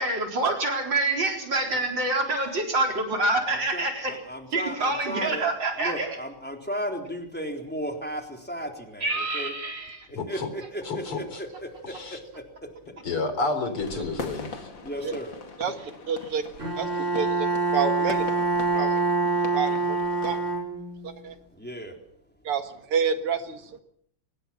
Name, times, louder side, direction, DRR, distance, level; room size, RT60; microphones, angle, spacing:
voice 1, 0.0-4.2 4.5-6.1 9.0-10.1, right 2 dB, 55° right, 3 dB, 5.0 m, -26 dB
voice 2, 3.5-5.5 5.8-9.5 10.3-11.7 14.8-15.4 21.6-21.9, equal, 5° left, 3 dB, 3.7 m, -35 dB
voice 3, 10.2-10.5 10.8-11.4 11.8-12.2 13.0-14.7, left 3 dB, 75° left, 9 dB, 4.8 m, -30 dB
sound 1, 13.8-20.4, left 4 dB, 60° left, 3.2 m, -41 dB
voice 4, 15.6-16.4 16.8-18.3 18.7-19.0 19.5-20.4 21.0-21.4 22.4-23.8, right 6 dB, 85° right, 8 dB, 2.7 m, -29 dB
Bowed string instrument, 16.6-21.1, right 3 dB, 30° right, 4.9 m, -25 dB
25.5 x 20.5 x 5.9 m, 0.69 s
omnidirectional pair, 2.4 m